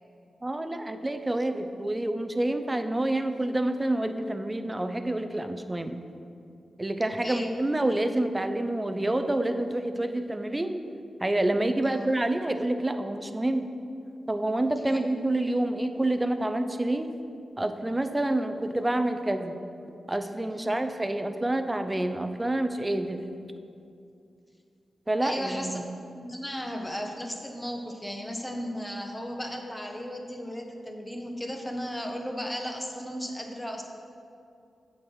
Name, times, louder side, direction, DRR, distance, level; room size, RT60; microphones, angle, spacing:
voice 1, 0.4-5.9 6.8-10.8 11.2-13.7 14.3-17.1 17.6-19.5 20.1-23.2 25.1-25.8, right 1 dB, 20° right, 8 dB, 0.5 m, -28 dB
voice 2, 7.2-7.6 11.8-12.1 14.7-15.2 20.5-20.8 25.2-25.8 26.1-33.8, equal, 10° left, 3 dB, 1.0 m, -35 dB
7.6 x 4.7 x 5.7 m, 2.5 s
cardioid pair, 55°, 0 cm